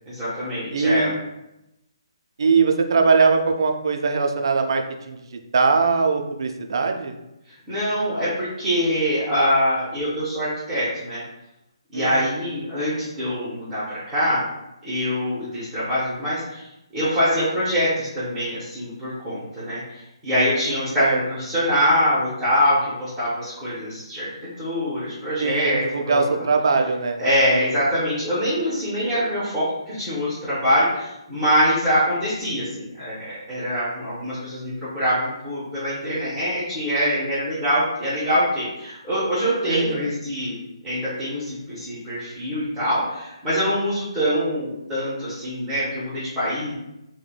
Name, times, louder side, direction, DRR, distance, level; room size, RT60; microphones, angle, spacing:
voice 1, 0.1-1.1 7.7-11.2 11.9-14.4 14.8-16.6 16.9-24.3 24.6-26.4 27.2-46.7, equal, 5° right, -13 dB, 0.5 m, -24 dB
voice 2, 0.7-1.2 2.4-7.2 11.9-12.4 21.0-21.2 25.4-27.2 39.6-40.2, right 4 dB, 55° right, 4 dB, 0.3 m, -21 dB
3.1 x 2.0 x 2.2 m, 0.90 s
hypercardioid pair, 170°, 3 cm